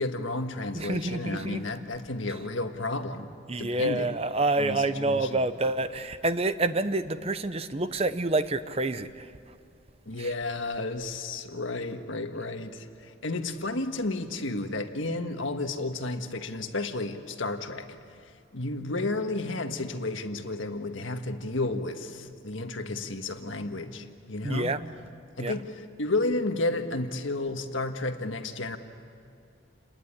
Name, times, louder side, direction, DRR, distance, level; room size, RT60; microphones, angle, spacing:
voice 1, 0.0-3.3 3.6-4.2 4.6-5.4 10.1-17.9 18.5-24.7 25.4-28.8, left 2 dB, 75° left, 6 dB, 1.6 m, -32 dB
voice 2, 0.7-1.6 3.5-9.1 10.2-10.3 24.4-24.8 25.4-25.5, right 2 dB, 30° right, 12 dB, 0.8 m, -27 dB
29.0 x 20.5 x 9.9 m, 2.4 s
head